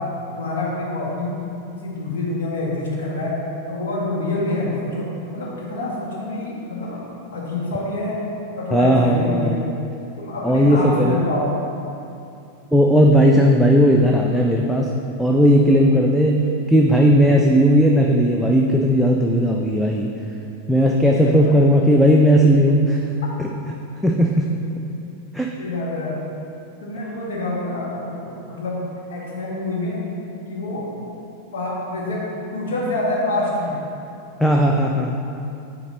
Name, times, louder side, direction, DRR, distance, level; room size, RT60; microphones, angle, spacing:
voice 1, 0.3-1.4 1.8-3.3 3.6-7.0 7.3-8.2 8.6-9.6 10.2-11.4 21.1-21.5 25.6-26.2 26.8-28.8 29.1-30.0 30.5-30.9 31.5-32.2 32.5-33.8, left 2 dB, 60° left, -4 dB, 1.3 m, -26 dB
voice 2, 8.7-9.6 10.4-11.2 12.7-14.9 15.2-20.1 20.7-23.0 23.4-23.5 24.0-24.5 25.3-25.5 34.4-35.2, equal, ahead, -1 dB, 0.4 m, -16 dB
8.1 x 4.7 x 2.9 m, 2.7 s
figure-of-eight pair, 90°, 0 cm